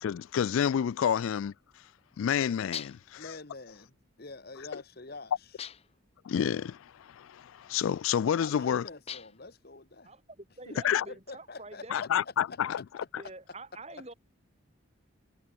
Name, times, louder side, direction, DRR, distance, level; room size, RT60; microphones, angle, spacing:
voice 1, 0.0-1.5 2.2-3.2 6.2-8.8 10.8-11.0 11.9-12.8, left 8 dB, 75° left, 0.3 m, -29 dB
sound 1, 2.7-3.2 5.6-6.0 9.1-9.5, left 9 dB, 30° left, 0.6 m, -41 dB
voice 2, 3.2-5.6 8.4-10.1 10.6-12.3 12.8-12.9, left 3 dB, 45° left, 1.2 m, -46 dB
voice 3, 10.1-12.0 13.2-14.1, right 2 dB, 30° right, 4.4 m, -46 dB
head